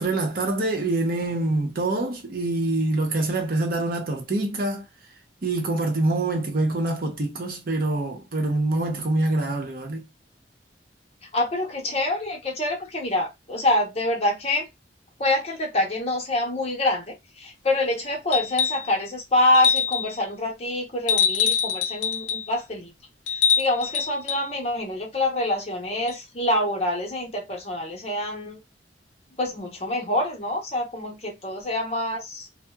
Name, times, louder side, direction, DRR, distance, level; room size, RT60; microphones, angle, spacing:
voice 1, 0.0-4.8 5.4-10.0, right 2 dB, 55° right, 0.7 m, -25 dB
voice 2, 11.3-14.7 15.2-22.9 23.6-28.6 29.4-32.5, left 1 dB, 35° left, 0.8 m, -26 dB
sound 1, 18.3-18.9 19.5-20.1 21.1-22.5 23.3-24.5 26.1-26.2, left 7 dB, 90° left, 0.4 m, -24 dB
2.7 x 2.1 x 2.2 m
head